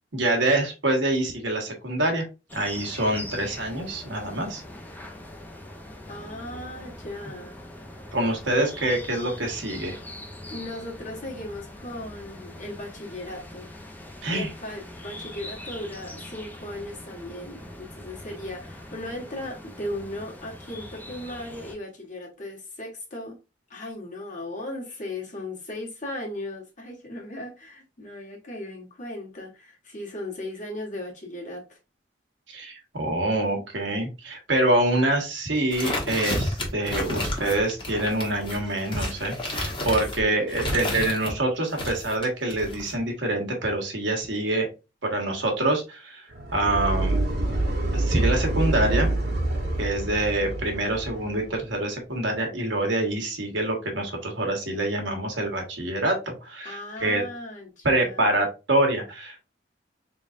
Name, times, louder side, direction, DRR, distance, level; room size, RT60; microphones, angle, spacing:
voice 1, 0.1-2.2 2.5-4.6 8.1-10.0 14.2-14.5 32.5-44.7 45.1-46.3 46.5-47.2 47.9-49.1 49.8-57.2 57.8-59.4, right 1 dB, 75° right, 1.3 m, -26 dB
sound 1, 2.5-21.8, left 1 dB, 10° left, 0.6 m, -42 dB
voice 2, 6.1-7.6 10.5-13.7 14.3-23.4 23.7-31.8 40.2-40.6 56.6-58.4, left 1 dB, 45° left, 1.5 m, -37 dB
sound 2, 35.7-41.3 41.7-43.0, left 1 dB, 25° left, 1.3 m, -31 dB
sound 3, 46.3-51.5, right 2 dB, 60° right, 1.2 m, -26 dB
3.9 x 3.4 x 2.5 m
head